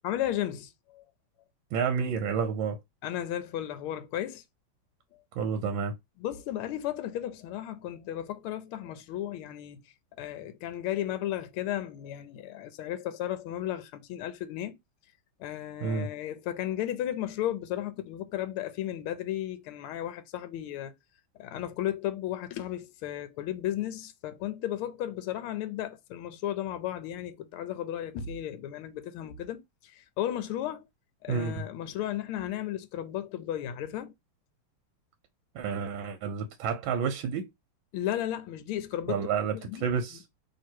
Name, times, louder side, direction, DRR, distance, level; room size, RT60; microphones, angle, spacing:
voice 1, 0.0-1.1 3.0-4.4 6.2-9.8 10.2-14.8 15.4-20.9 21.4-30.8 31.2-34.1 37.9-39.9, left 12 dB, 85° left, 1.5 m, -34 dB
voice 2, 1.7-2.8 5.4-5.9 15.8-16.1 31.3-31.6 35.5-37.5 39.1-40.2, right 6 dB, 75° right, 1.3 m, -30 dB
3.2 x 2.9 x 4.3 m
omnidirectional pair, 2.4 m